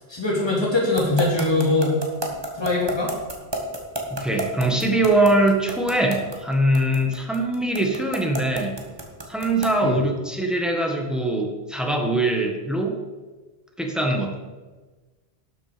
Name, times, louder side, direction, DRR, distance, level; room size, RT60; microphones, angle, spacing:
voice 1, 0.0-2.0 2.5-3.1 9.8-10.0, left 2 dB, 25° left, -4 dB, 2.7 m, -22 dB
sound 1, 1.0-9.8, right 2 dB, 25° right, 1.5 m, -30 dB
voice 2, 4.1-8.8 9.3-13.0 13.8-14.4, right 1 dB, ahead, 1 dB, 1.5 m, -22 dB
12.0 x 7.5 x 5.1 m, 1.3 s
omnidirectional pair, 1.1 m